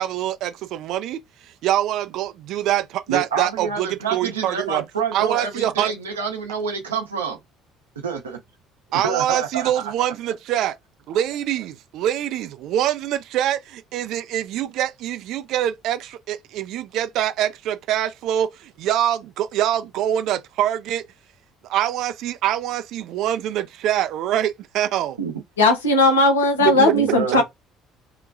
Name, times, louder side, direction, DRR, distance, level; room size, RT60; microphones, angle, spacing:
voice 1, 0.0-4.8 5.1-5.9 8.9-10.8 11.1-21.0 21.7-25.2 26.7-26.8, right 11 dB, 60° right, 0.4 m, -24 dB
voice 2, 3.1-7.4 8.0-8.4 8.9-9.9 25.2-25.3 26.6-27.4, right 6 dB, 90° right, 0.7 m, -27 dB
voice 3, 25.6-27.4, left 2 dB, 85° left, 0.7 m, -17 dB
2.8 x 2.2 x 2.5 m
hypercardioid pair, 60°, 0 cm